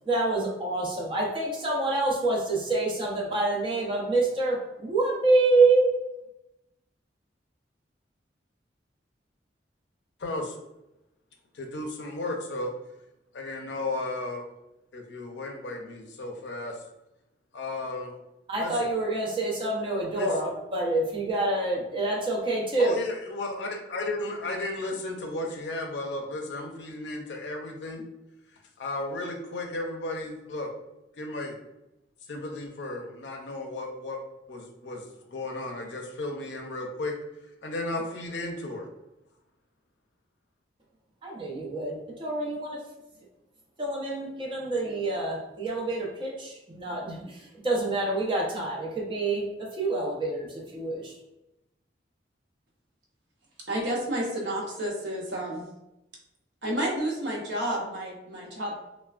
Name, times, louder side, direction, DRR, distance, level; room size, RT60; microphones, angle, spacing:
voice 1, 0.1-5.9 18.5-23.0 41.2-42.8 43.8-51.1, right 2 dB, 25° right, -3 dB, 0.6 m, -27 dB
voice 2, 10.2-10.5 11.5-12.7 13.3-14.4 14.9-16.8 17.5-18.1 18.6-18.7 20.1-20.3 22.8-28.0 28.8-30.7 31.2-31.6 32.3-34.2 34.5-37.1 37.6-38.9, left 2 dB, 70° left, 2 dB, 0.5 m, -34 dB
voice 3, 53.7-55.6 56.6-58.8, right 1 dB, 75° right, -1 dB, 0.7 m, -30 dB
3.2 x 2.1 x 2.3 m, 0.93 s
head